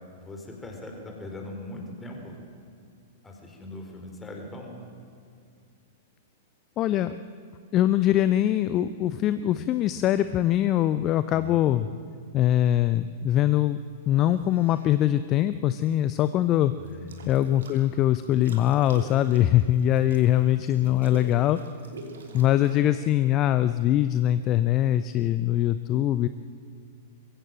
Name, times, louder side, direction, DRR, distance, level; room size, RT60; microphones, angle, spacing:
voice 1, 0.2-2.4 3.2-4.8 11.3-11.6 16.8-17.3 20.3-20.5 20.8-21.0, left 2 dB, 10° left, 2 dB, 4.3 m, -41 dB
voice 2, 6.8-7.2 7.7-11.9 12.3-13.8 14.1-16.7 17.3-21.6 22.3-26.3, left 12 dB, 30° left, 13 dB, 0.6 m, -22 dB
sound 1, 14.2-14.9 16.8-17.8 18.2-22.8, right 3 dB, 65° right, 3.0 m, -44 dB
22.0 x 16.0 x 7.6 m, 2.4 s
figure-of-eight pair, 100°, 0 cm